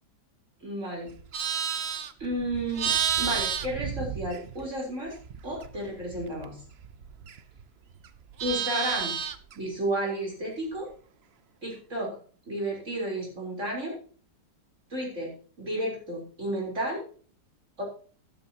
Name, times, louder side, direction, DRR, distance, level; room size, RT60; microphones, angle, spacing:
voice 1, 0.6-1.1 2.2-5.1 5.4-6.6 8.4-9.1 9.5-10.9 11.6-12.2 12.5-13.9 14.9-17.0 17.8-17.9, right 1 dB, 40° right, -1 dB, 4.4 m, -32 dB
Livestock farm animals working animals, 1.1-4.8 5.1-7.6 7.9-9.5, right 8 dB, 60° right, 0.7 m, -31 dB
12.5 x 12.0 x 2.9 m, 0.41 s
omnidirectional pair, 1.9 m